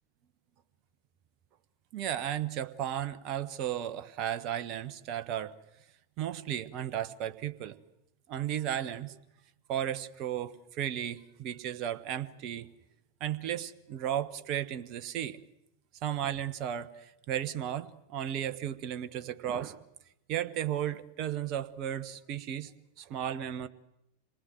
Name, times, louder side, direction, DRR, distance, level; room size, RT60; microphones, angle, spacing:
voice 1, 1.9-5.6 6.2-7.8 8.3-9.2 9.7-12.7 13.2-15.4 16.0-19.8 20.3-22.7 23.0-23.7, right 10 dB, 40° right, 12 dB, 1.2 m, -34 dB
26.5 x 20.0 x 7.9 m, 0.83 s
figure-of-eight pair, 90°, 0 cm